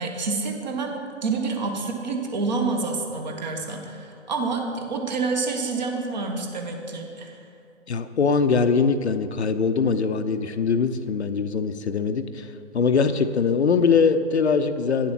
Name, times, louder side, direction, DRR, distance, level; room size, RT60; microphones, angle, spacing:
voice 1, 0.0-7.4, right 4 dB, 35° right, 3 dB, 1.3 m, -28 dB
voice 2, 7.9-15.1, left 5 dB, 65° left, 10 dB, 0.6 m, -22 dB
9.5 x 7.2 x 5.9 m, 2.7 s
figure-of-eight pair, 140°, 36 cm